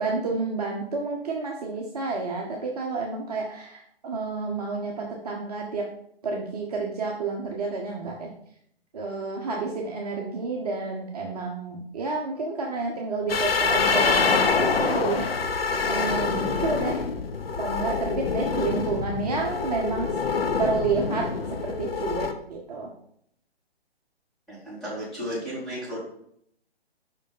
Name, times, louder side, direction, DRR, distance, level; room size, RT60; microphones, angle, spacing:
voice 1, 0.0-5.8 6.2-8.3 8.9-15.5 15.9-17.0 17.6-20.1 20.6-21.3 21.6-22.9, right 4 dB, 35° right, -1 dB, 0.9 m, -30 dB
sound 1, 13.3-22.3, left 5 dB, 65° left, 0.8 m, -26 dB
voice 2, 24.5-26.0, equal, ahead, -10 dB, 2.4 m, -34 dB
5.4 x 5.1 x 4.0 m, 0.69 s
figure-of-eight pair, 130°, 32 cm